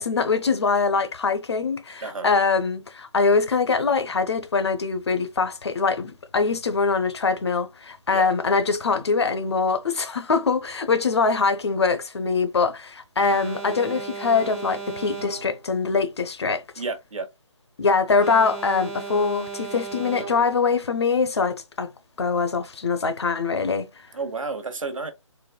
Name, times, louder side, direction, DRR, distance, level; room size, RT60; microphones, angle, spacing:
voice 1, 0.0-16.6 17.8-21.9 22.2-24.1, left 4 dB, 55° left, 0.6 m, -23 dB
Alarm, 13.2-15.7 18.2-20.7, right 4 dB, 10° right, 0.4 m, -36 dB
voice 2, 16.8-17.3 24.1-25.1, right 4 dB, 80° right, 1.0 m, -31 dB
4.0 x 2.2 x 2.2 m
hypercardioid pair, 170°, 17 cm